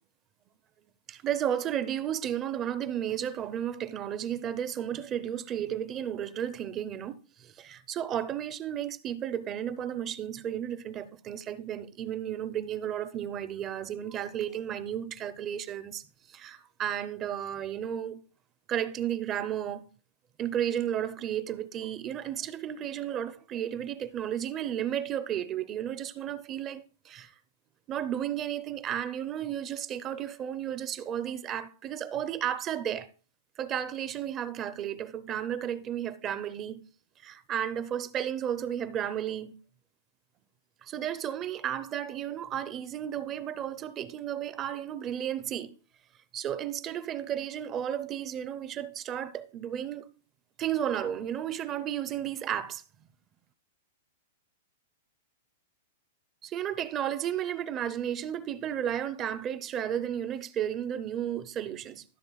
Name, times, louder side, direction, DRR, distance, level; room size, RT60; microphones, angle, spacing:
voice 1, 1.1-18.2 18.7-19.9 20.4-27.3 27.9-33.1 33.6-36.8 37.2-39.5 40.8-45.8 46.3-50.1 50.6-52.8 56.4-62.0, right 10 dB, 25° right, 0.5 m, -33 dB
14.5 x 6.7 x 2.3 m
hypercardioid pair, 150°, 0 cm